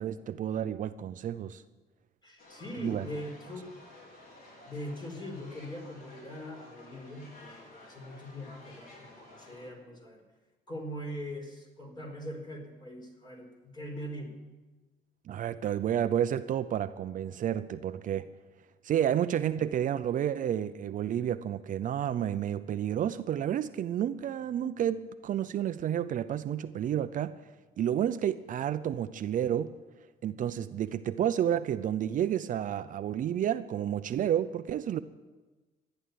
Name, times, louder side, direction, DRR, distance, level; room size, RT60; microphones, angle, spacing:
voice 1, 0.0-1.6 2.8-3.1 15.3-18.3 18.8-27.3 27.8-29.7 30.2-35.0, right 10 dB, 50° right, 0.6 m, -30 dB
voice 2, 2.2-3.7 4.7-10.2 10.7-14.4, equal, 25° left, 4.3 m, -41 dB
sound 1, 2.4-9.7, left 1 dB, 55° left, 4.9 m, -53 dB
14.0 x 10.5 x 9.4 m
cardioid pair, 110°, 17 cm